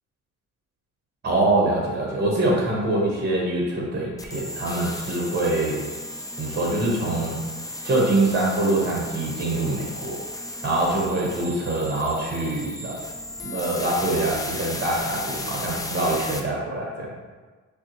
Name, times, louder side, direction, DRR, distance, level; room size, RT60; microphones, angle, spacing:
voice 1, 1.2-5.8 6.4-7.4 7.8-10.2 10.6-13.0 13.4-17.1, right 2 dB, 35° right, -2 dB, 1.0 m, -24 dB
sound 1, 4.2-16.4, left 2 dB, 10° left, 0.4 m, -35 dB
5.5 x 2.2 x 3.0 m, 1.3 s
cardioid pair, 90°, 30 cm